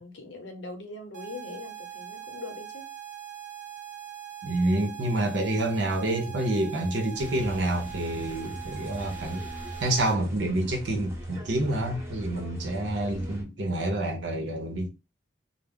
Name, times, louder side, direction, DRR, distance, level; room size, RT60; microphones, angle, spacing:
voice 1, 0.0-2.8, left 3 dB, 90° left, 0.7 m, -41 dB
sound 1, 1.1-10.1, right 10 dB, 45° right, 0.4 m, -42 dB
voice 2, 4.4-9.4 9.8-14.9, right 1 dB, 80° right, 0.7 m, -28 dB
sound 2, 7.2-13.4, equal, 15° right, 0.7 m, -40 dB
2.3 x 2.0 x 3.5 m
head